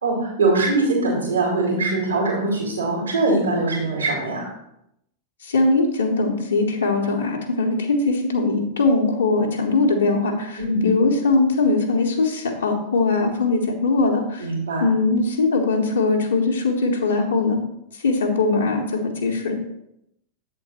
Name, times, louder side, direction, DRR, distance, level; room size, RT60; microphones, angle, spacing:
voice 1, 0.0-4.5 10.6-10.9 14.4-14.8, right 2 dB, 75° right, -3 dB, 2.0 m, -22 dB
voice 2, 5.4-14.5 14.8-17.6 17.9-19.6, left 3 dB, 70° left, 0 dB, 0.9 m, -21 dB
7.8 x 3.8 x 4.1 m, 0.80 s
figure-of-eight pair, 90°, 0 cm